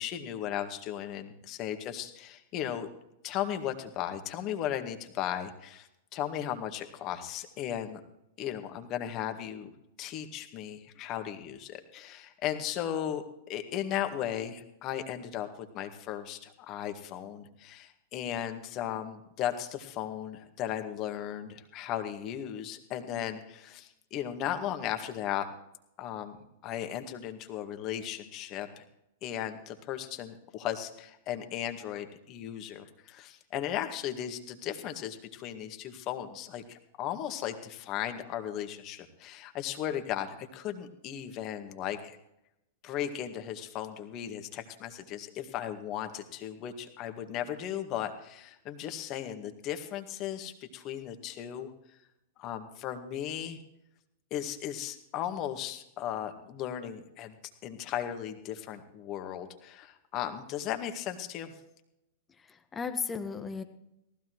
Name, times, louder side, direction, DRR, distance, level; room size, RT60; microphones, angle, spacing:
voice 1, 0.0-2.9 3.2-8.0 8.4-9.7 10.0-13.2 13.5-25.5 26.0-28.8 29.2-42.2 42.8-51.7 52.4-53.6 54.3-57.4 57.6-61.5, left 10 dB, 40° left, 6 dB, 1.9 m, -36 dB
voice 2, 62.4-63.6, left 5 dB, 20° left, 7 dB, 1.6 m, -35 dB
18.5 x 15.0 x 3.2 m, 0.83 s
hypercardioid pair, 105°, 0 cm